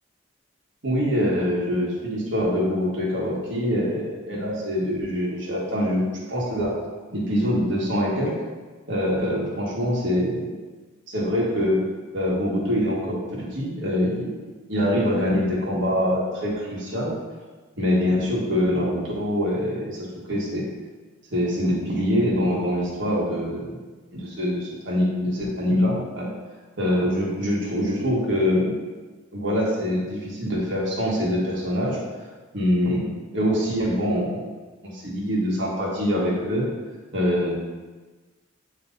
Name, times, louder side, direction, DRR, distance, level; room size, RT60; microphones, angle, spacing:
voice 1, 0.8-6.7 7.1-8.3 8.9-10.5 11.1-11.8 12.1-14.3 14.7-17.1 17.8-20.0 20.3-20.6 21.3-23.8 24.1-26.3 26.8-28.8 29.3-32.0 32.5-34.4 34.9-36.7 37.1-37.5, equal, 70° right, -5 dB, 1.7 m, -24 dB
8.8 x 3.2 x 4.0 m, 1.3 s
head